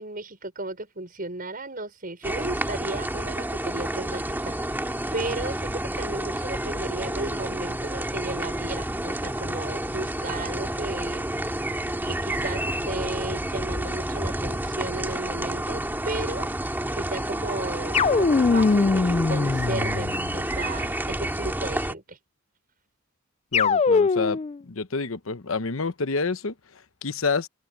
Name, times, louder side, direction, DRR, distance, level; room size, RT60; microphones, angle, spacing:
voice 1, 0.0-5.7 6.0-11.3 12.1-22.2, right 2 dB, 45° right, 6.0 m, -35 dB
sound 1, 2.2-21.9, right 1 dB, 10° right, 2.2 m, -29 dB
sound 2, 17.9-20.4 23.5-24.6, left 4 dB, 30° left, 0.3 m, -22 dB
voice 2, 23.5-24.4 24.7-27.5, left 4 dB, 75° left, 1.0 m, -28 dB
open air
head